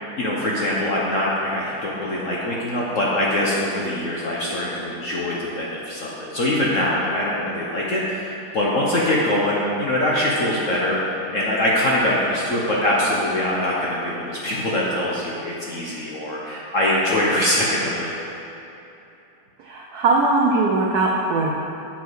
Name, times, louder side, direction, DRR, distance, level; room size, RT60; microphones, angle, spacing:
voice 1, 0.2-18.4, left 1 dB, 50° left, -5 dB, 0.9 m, -23 dB
voice 2, 19.6-21.5, right 3 dB, 75° right, -1 dB, 0.9 m, -20 dB
7.2 x 7.0 x 4.7 m, 2.9 s
omnidirectional pair, 2.3 m